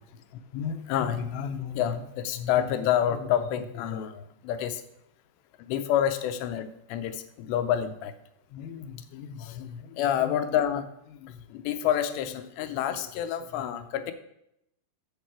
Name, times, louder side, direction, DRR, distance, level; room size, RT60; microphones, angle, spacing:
voice 1, 0.5-4.8 5.6-8.1 8.5-14.1, left 10 dB, 80° left, 10 dB, 2.7 m, -29 dB
8.5 x 7.7 x 4.5 m, 0.78 s
omnidirectional pair, 5.2 m